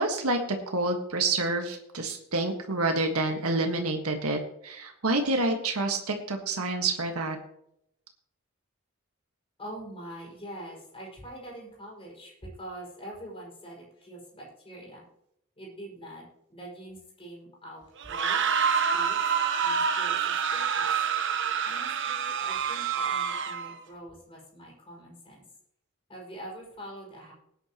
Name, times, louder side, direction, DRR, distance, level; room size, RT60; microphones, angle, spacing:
voice 1, 0.0-7.4, right 2 dB, 90° right, 4 dB, 1.6 m, -28 dB
voice 2, 9.6-12.3 12.6-15.0 15.6-16.2 16.5-18.5 18.9-19.2 19.6-20.9 21.6-25.4 26.1-27.3, right 1 dB, 25° left, -3 dB, 5.6 m, -44 dB
sound 1, 18.0-23.8, right 7 dB, 60° right, 1.0 m, -27 dB
19.5 x 10.0 x 3.0 m, 0.77 s
head